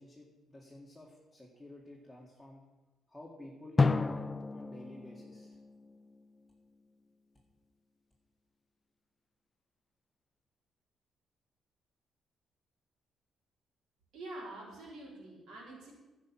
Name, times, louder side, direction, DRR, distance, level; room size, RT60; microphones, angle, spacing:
voice 1, 0.0-2.6 3.1-5.6, left 1 dB, 5° left, -4 dB, 2.0 m, -51 dB
Drum, 3.8-6.5, left 3 dB, 25° left, 0.5 m, -32 dB
voice 2, 14.1-15.9, right 2 dB, 75° right, -3 dB, 3.8 m, -46 dB
10.5 x 5.9 x 8.9 m, 1.1 s
cardioid pair, 90°, 0 cm